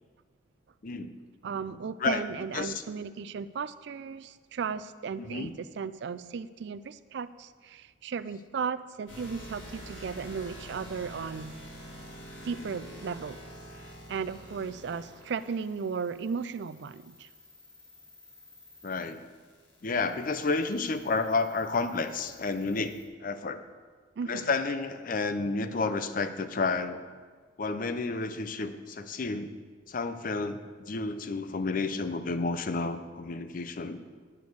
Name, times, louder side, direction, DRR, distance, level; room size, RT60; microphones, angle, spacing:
voice 1, 0.8-1.2 2.0-2.2 2.5-2.8 5.2-5.5 18.8-19.2 19.8-23.6 24.3-27.0 27.6-29.5 29.9-34.0, left 3 dB, 45° left, 10 dB, 0.6 m, -31 dB
voice 2, 1.4-11.5 12.4-13.4 14.1-17.3 24.2-24.5, right 6 dB, 60° right, 15 dB, 0.4 m, -35 dB
sound 1, 9.1-23.0, equal, 80° left, 2.8 m, -48 dB
9.7 x 5.2 x 7.7 m, 1.5 s
head